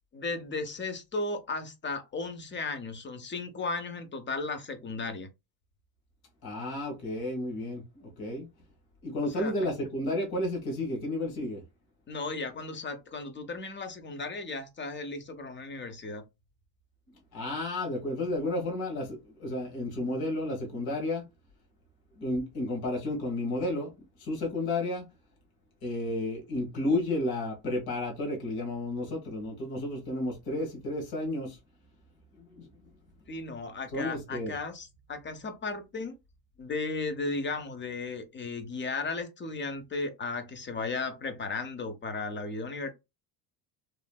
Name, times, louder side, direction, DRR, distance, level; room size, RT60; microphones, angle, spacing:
voice 1, 0.1-5.3 9.2-9.5 12.1-16.2 33.3-36.2 36.6-42.9, left 3 dB, 25° left, 0.6 m, -35 dB
voice 2, 6.4-8.5 9.0-11.6 17.3-21.3 22.2-23.9 24.2-25.0 25.8-31.6 32.3-32.7 33.9-34.5, left 1 dB, 50° left, 1.6 m, -32 dB
3.2 x 2.6 x 2.2 m
cardioid pair, 105°, 47 cm